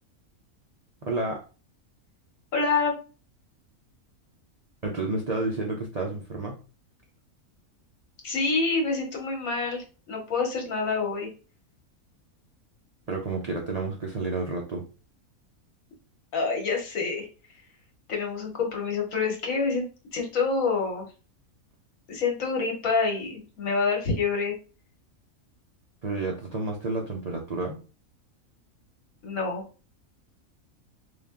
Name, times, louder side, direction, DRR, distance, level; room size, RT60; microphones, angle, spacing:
voice 1, 1.0-1.4 4.8-6.5 13.1-14.9 26.0-27.8, right 3 dB, 55° right, 0 dB, 0.4 m, -30 dB
voice 2, 2.5-2.9 8.2-11.3 16.3-17.6 18.1-21.1 22.1-24.6 29.2-29.6, left 4 dB, 70° left, 1 dB, 1.4 m, -27 dB
3.3 x 2.4 x 3.6 m, 0.35 s
omnidirectional pair, 1.5 m